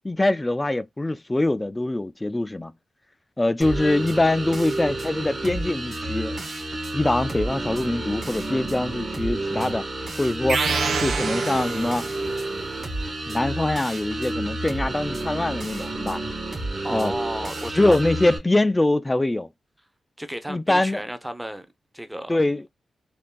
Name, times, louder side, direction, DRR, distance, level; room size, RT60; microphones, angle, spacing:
voice 1, 0.0-2.7 3.4-6.4 6.9-9.9 10.2-10.6 11.0-12.1 13.3-16.2 16.9-17.1 17.7-19.5 20.5-21.0 22.3-22.6, left 2 dB, 20° left, 0.3 m, -23 dB
sound 1, 3.6-18.4, right 2 dB, 40° right, 1.4 m, -30 dB
sound 2, 10.5-12.4, right 5 dB, 70° right, 0.5 m, -27 dB
voice 2, 16.8-18.0 20.2-21.7 21.9-22.4, equal, 5° right, 0.7 m, -33 dB
3.4 x 2.3 x 2.2 m
supercardioid pair, 50°, 0 cm